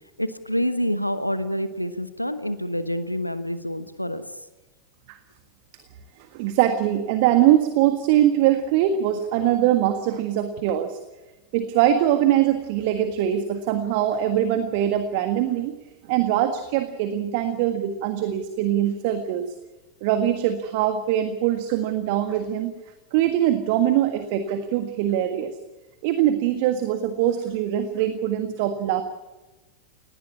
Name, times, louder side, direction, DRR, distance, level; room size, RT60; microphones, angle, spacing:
voice 1, 0.2-4.3, equal, 90° left, 12 dB, 1.1 m, -27 dB
voice 2, 6.3-11.0 11.5-15.7 16.1-19.5 20.0-22.7 23.1-25.5 26.0-29.0, right 11 dB, 45° right, 9 dB, 1.6 m, -22 dB
19.0 x 18.5 x 8.6 m, 1.1 s
figure-of-eight pair, 90°, 0 cm